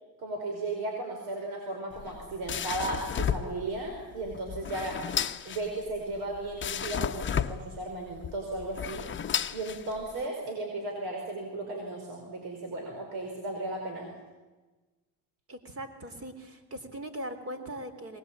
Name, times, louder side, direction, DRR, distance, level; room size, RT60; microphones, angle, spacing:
voice 1, 0.2-5.0 5.5-9.1 9.5-14.1, right 2 dB, 65° right, 2 dB, 5.2 m, -35 dB
sound 1, 1.9-10.2, left 8 dB, 30° left, 0.9 m, -33 dB
voice 2, 15.5-18.2, right 1 dB, 35° right, 8 dB, 3.6 m, -40 dB
22.5 x 20.0 x 8.9 m, 1.2 s
supercardioid pair, 100°, 41 cm